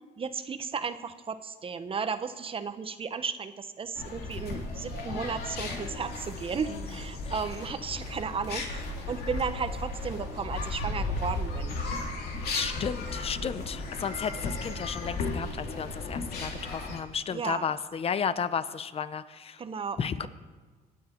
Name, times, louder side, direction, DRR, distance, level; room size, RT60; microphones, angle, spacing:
voice 1, 0.2-11.8 17.3-17.7 19.6-20.3, right 6 dB, 35° right, 10 dB, 1.0 m, -34 dB
sound 1, 4.0-17.0, left 3 dB, 65° left, 2.6 m, -35 dB
voice 2, 12.5-19.6 20.0-20.3, left 7 dB, 35° left, 14 dB, 0.8 m, -33 dB
25.0 x 9.3 x 4.5 m, 1.4 s
cardioid pair, 110°, 17 cm